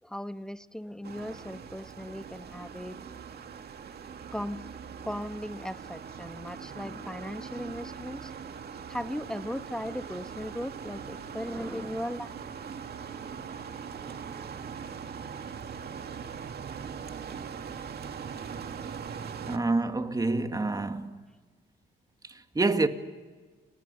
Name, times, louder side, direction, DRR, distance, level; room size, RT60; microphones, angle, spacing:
voice 1, 0.0-3.0 4.3-4.7 5.0-8.3 8.9-12.4, equal, 5° left, 1.3 m, -37 dB
sound 1, 1.0-19.6, right 6 dB, 55° right, 2.4 m, -41 dB
voice 2, 19.5-21.2 22.2-22.9, right 3 dB, 20° right, 2.1 m, -27 dB
30.0 x 28.0 x 7.0 m
cardioid pair, 90°, 20 cm